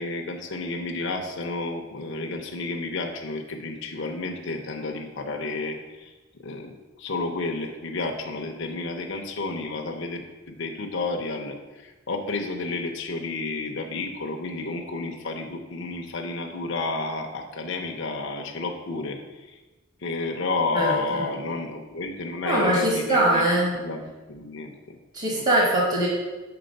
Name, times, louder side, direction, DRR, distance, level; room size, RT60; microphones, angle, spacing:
voice 1, 0.0-6.1 6.4-6.7 7.0-19.2 19.5-19.6 20.0-23.4 23.7-25.0 25.3-25.4, left 3 dB, 60° left, 2 dB, 0.7 m, -31 dB
voice 2, 20.7-21.2 22.4-23.7 25.1-26.1, right 1 dB, 40° right, -3 dB, 1.1 m, -22 dB
6.8 x 4.0 x 5.2 m, 1.2 s
head